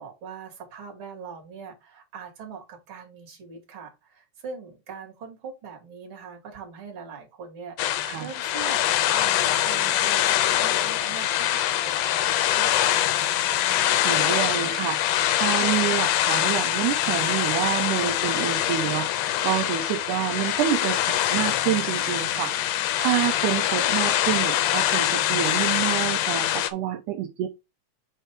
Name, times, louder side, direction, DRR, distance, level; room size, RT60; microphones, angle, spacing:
voice 1, 0.0-9.4 9.6-12.9, right 5 dB, 40° right, 3.0 m, -41 dB
sound 1, 7.8-26.7, left 12 dB, 80° left, 2.2 m, -24 dB
voice 2, 14.0-22.5 23.0-27.5, right 12 dB, 75° right, 2.1 m, -28 dB
8.4 x 3.3 x 4.6 m
omnidirectional pair, 3.7 m